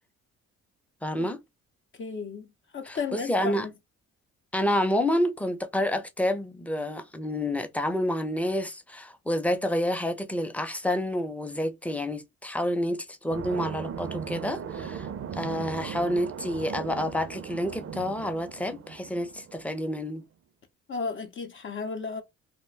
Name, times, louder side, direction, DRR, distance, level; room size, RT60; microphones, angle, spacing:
voice 1, 1.0-1.4 2.9-3.7 4.5-20.2, left 1 dB, 5° left, 0.5 m, -29 dB
voice 2, 2.0-2.5 2.7-3.7 20.9-22.2, left 5 dB, 40° left, 0.7 m, -34 dB
sound 1, 13.3-19.7, right 7 dB, 45° right, 0.5 m, -38 dB
2.4 x 2.2 x 3.2 m
cardioid pair, 90°, 30 cm